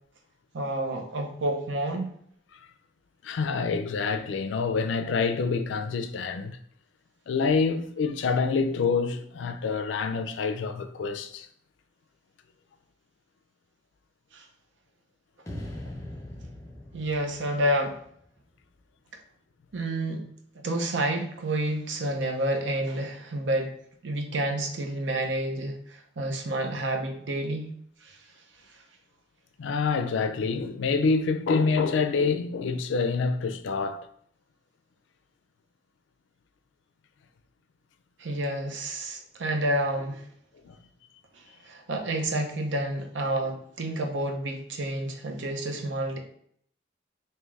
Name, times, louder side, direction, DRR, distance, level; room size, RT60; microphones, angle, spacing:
voice 1, 0.5-2.1 14.3-14.5 16.9-18.0 19.7-20.2 20.6-23.8 24.0-27.7 28.0-28.2 38.2-40.2 41.4-46.2, right 1 dB, 75° right, 0.7 m, -29 dB
voice 2, 3.2-6.6 7.3-11.5 29.6-34.1 40.6-40.8, left 4 dB, 80° left, 0.4 m, -27 dB
classic trueverb boom, 15.5-18.7, left 1 dB, 15° left, 0.5 m, -41 dB
3.2 x 2.9 x 3.5 m
head